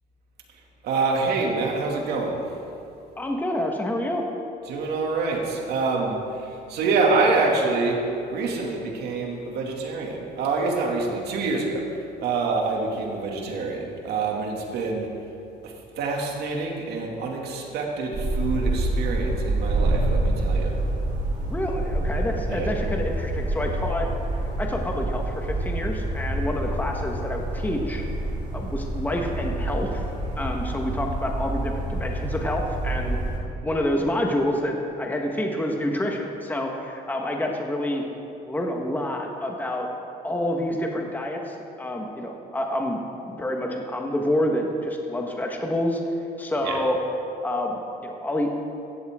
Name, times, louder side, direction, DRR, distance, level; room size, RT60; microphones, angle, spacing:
voice 1, 0.8-2.4 4.7-11.8 12.2-15.1 15.6-20.8 22.5-22.7 46.6-46.8, right 3 dB, 75° right, 0 dB, 2.4 m, -26 dB
voice 2, 3.2-4.2 21.5-24.1 24.6-28.0 28.5-30.0 30.4-33.3 33.6-38.0 38.5-39.9 40.2-46.0 46.4-47.0 47.4-48.5, left 1 dB, 10° left, 1 dB, 1.4 m, -28 dB
sound 1, 18.1-33.4, right 1 dB, 45° right, 3.6 m, -27 dB
16.0 x 14.0 x 3.7 m, 2.8 s
cardioid pair, 110°, 17 cm